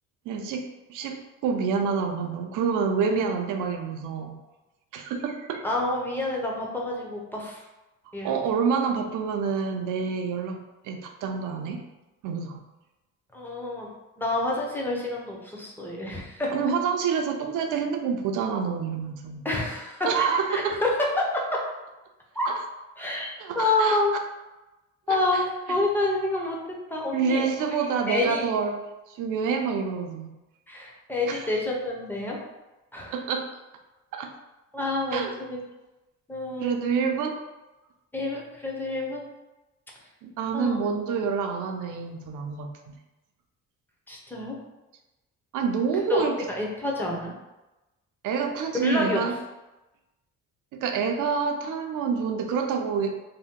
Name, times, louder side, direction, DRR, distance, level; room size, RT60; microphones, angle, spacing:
voice 1, 0.3-0.6 0.9-4.4 4.9-5.6 8.2-11.8 12.2-12.6 16.5-19.5 20.0-20.8 22.5-22.6 23.4-24.0 25.1-25.4 27.1-28.8 29.1-30.3 31.3-31.5 33.1-33.5 34.1-34.3 35.1-35.3 36.6-37.4 40.2-43.0 45.5-46.5 48.2-49.3 50.7-53.2, right 5 dB, 70° right, 4 dB, 0.5 m, -27 dB
voice 2, 5.6-7.6 8.1-8.3 13.3-13.9 14.2-16.5 19.4-20.9 21.2-21.4 22.3-22.5 23.0-24.2 25.1-25.4 25.7-26.6 26.9-27.5 28.1-28.4 30.7-32.4 32.9-33.1 34.7-35.6 36.3-36.8 38.1-39.2 40.5-40.8 44.1-44.6 46.1-47.3 48.8-49.2, left 2 dB, 5° left, -2 dB, 0.6 m, -28 dB
2.7 x 2.1 x 3.6 m, 1.0 s
cardioid pair, 120°, 33 cm